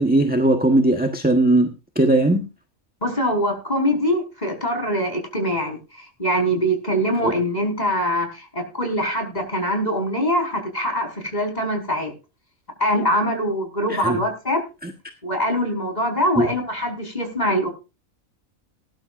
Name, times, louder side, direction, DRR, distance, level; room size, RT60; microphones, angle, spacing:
voice 1, 0.0-2.5 7.2-7.3 13.9-14.2 14.8-14.9 16.4-16.5, right 1 dB, 5° right, 4 dB, 1.2 m, -19 dB
voice 2, 3.0-12.1 12.8-14.6 15.2-17.7, equal, 30° left, 3 dB, 5.1 m, -23 dB
19.5 x 11.5 x 2.6 m, 0.30 s
omnidirectional pair, 1.4 m